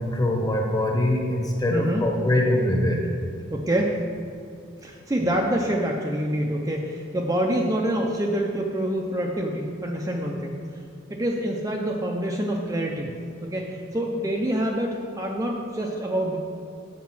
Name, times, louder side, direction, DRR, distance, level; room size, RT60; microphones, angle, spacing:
voice 1, 0.0-3.0 5.2-5.3, left 1 dB, 20° left, 0 dB, 1.0 m, -23 dB
voice 2, 1.7-2.0 3.5-4.0 4.8-10.5 11.1-13.1 13.4-16.4, right 1 dB, 15° right, 0 dB, 0.5 m, -26 dB
7.4 x 5.1 x 6.0 m, 2.4 s
head